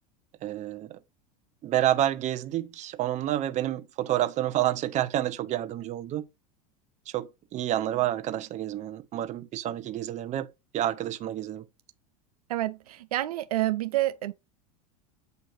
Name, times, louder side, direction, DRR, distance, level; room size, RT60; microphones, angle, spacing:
voice 1, 0.4-1.0 1.6-6.2 7.1-10.5 10.7-11.6, right 13 dB, 40° right, 0.9 m, -29 dB
voice 2, 12.5-14.3, right 15 dB, 80° right, 0.6 m, -28 dB
8.0 x 2.7 x 4.8 m
hypercardioid pair, 100°, 19 cm